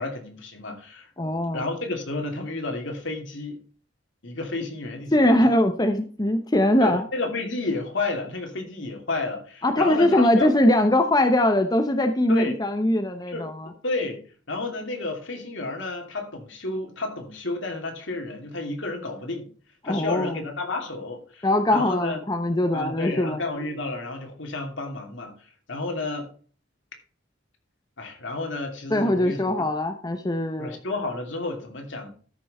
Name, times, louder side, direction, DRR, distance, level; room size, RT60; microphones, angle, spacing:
voice 1, 0.0-1.1 1.5-3.6 4.2-5.5 6.8-10.5 12.3-12.6 13.3-13.4 13.8-14.2 14.5-19.5 19.8-22.2 22.7-26.3 28.0-29.7 30.6-32.1, left 2 dB, 70° left, 2.8 m, -31 dB
voice 2, 1.2-1.6 5.1-7.0 9.6-13.7 19.8-20.4 21.4-23.4 28.9-30.8, left 1 dB, 20° left, 0.8 m, -21 dB
13.5 x 6.1 x 4.2 m
head